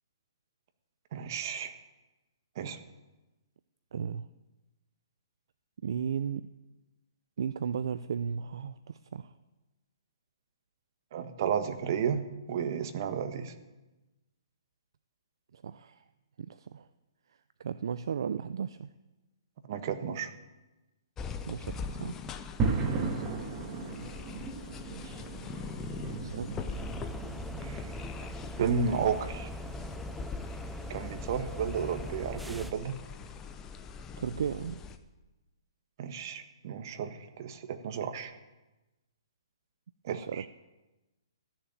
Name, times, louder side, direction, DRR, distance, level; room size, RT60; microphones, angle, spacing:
voice 1, 1.1-1.7 2.6-2.8 11.1-13.5 19.7-20.3 22.8-23.1 27.6-27.9 28.6-29.5 30.9-33.0 36.0-38.3 40.0-40.4, right 7 dB, 45° right, 9 dB, 1.3 m, -33 dB
voice 2, 3.9-4.3 5.8-6.5 7.4-9.3 15.5-16.0 16.4-16.9 17.6-18.9 21.5-22.2 24.9-25.2 26.2-26.6 34.2-34.8 40.2-40.5, right 7 dB, 65° right, 13 dB, 0.5 m, -35 dB
sound 1, 21.2-35.0, left 5 dB, 15° left, 0.8 m, -42 dB
sound 2, 22.6-32.8, right 4 dB, 25° right, 1.6 m, -38 dB
sound 3, 26.7-32.7, equal, ahead, 0.4 m, -42 dB
13.0 x 7.1 x 9.0 m, 1.1 s
hypercardioid pair, 145°, 3 cm